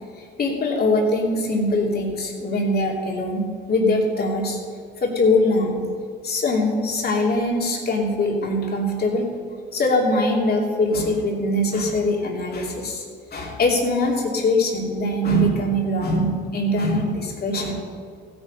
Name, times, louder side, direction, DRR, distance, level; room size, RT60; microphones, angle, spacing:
voice 1, 0.2-4.6 5.0-5.8 6.2-9.3 9.7-13.0 13.3-17.8, left 1 dB, 50° left, 0 dB, 3.0 m, -22 dB
16.0 x 9.4 x 5.4 m, 2.2 s
cardioid pair, 90°, 20 cm